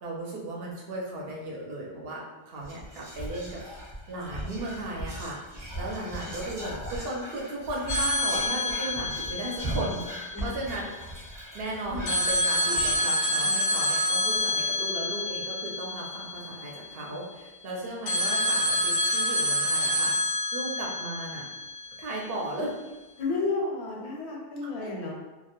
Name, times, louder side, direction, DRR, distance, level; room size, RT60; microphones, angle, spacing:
voice 1, 0.0-3.6 4.1-5.4 5.8-10.9 11.5-21.5 22.0-22.7 24.8-24.9, right 1 dB, 65° right, -3 dB, 0.7 m, -35 dB
Whispering, 2.6-13.6 13.9-14.0 14.2-14.7, right 1 dB, 30° right, 0.6 m, -39 dB
voice 2, 6.0-6.4 10.3-10.6 23.2-25.1, left 3 dB, 75° left, -2 dB, 0.9 m, -32 dB
sound 1, 7.9-10.8 12.1-17.0 18.1-22.2, left 1 dB, 50° left, 0.6 m, -28 dB
2.2 x 2.0 x 2.9 m, 1.1 s
omnidirectional pair, 1.2 m